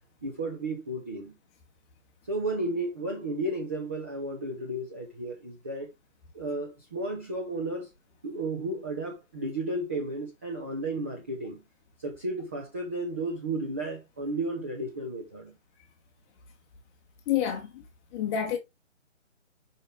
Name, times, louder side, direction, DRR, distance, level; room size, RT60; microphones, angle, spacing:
voice 1, 0.2-1.3 2.3-5.9 6.3-7.9 8.2-11.6 12.0-15.5, right 2 dB, 10° right, 0.7 m, -33 dB
voice 2, 17.3-17.8 18.1-18.6, left 9 dB, 10° left, 1.4 m, -28 dB
6.7 x 5.9 x 3.4 m
figure-of-eight pair, 155°, 38 cm